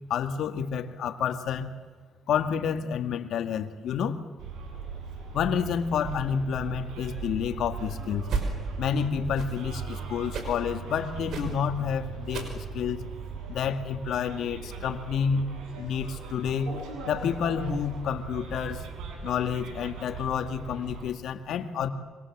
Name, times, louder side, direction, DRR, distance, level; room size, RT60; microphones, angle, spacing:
voice 1, 0.1-1.7 2.3-4.2 5.3-8.3 8.8-13.0 13.5-15.5 15.8-16.7 17.1-18.8 19.2-21.9, left 7 dB, 75° left, 8 dB, 2.0 m, -29 dB
Bus, 4.4-21.1, right 4 dB, 85° right, 7.1 m, -39 dB
sound 1, 8.2-8.5 9.2-9.6 10.3-10.6 11.2-11.6 12.2-12.6 13.2-13.3, right 4 dB, 70° right, 5.8 m, -33 dB
26.5 x 25.0 x 7.5 m, 1.5 s
cardioid pair, 90°, 0 cm